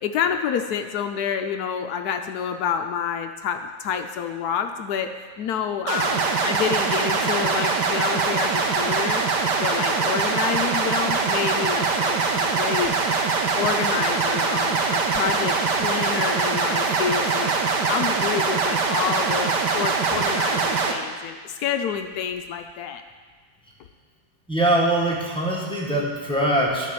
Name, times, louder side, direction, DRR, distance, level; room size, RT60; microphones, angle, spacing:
voice 1, 0.0-12.9 13.6-23.0, left 7 dB, 70° left, 6 dB, 0.9 m, -28 dB
sound 1, 5.9-20.9, right 4 dB, 65° right, 1.4 m, -23 dB
voice 2, 24.5-26.9, right 1 dB, 5° left, -4 dB, 1.3 m, -22 dB
10.5 x 4.9 x 6.9 m, 1.5 s
omnidirectional pair, 2.1 m